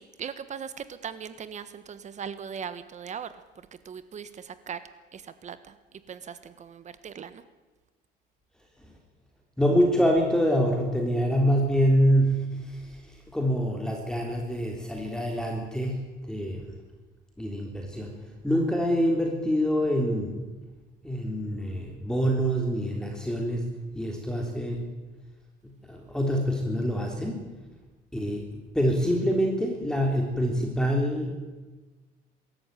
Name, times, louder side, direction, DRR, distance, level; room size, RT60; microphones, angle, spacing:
voice 1, 0.0-3.3 3.8-4.8 5.1-5.7 6.1-7.4, right 7 dB, 45° right, 13 dB, 1.4 m, -39 dB
voice 2, 9.6-16.7 17.4-20.5 21.0-23.7 23.9-24.9 25.6-27.4 28.1-28.5 28.7-31.3, equal, 5° left, 1 dB, 3.6 m, -26 dB
23.0 x 14.0 x 9.2 m, 1.2 s
cardioid pair, 110°, 17 cm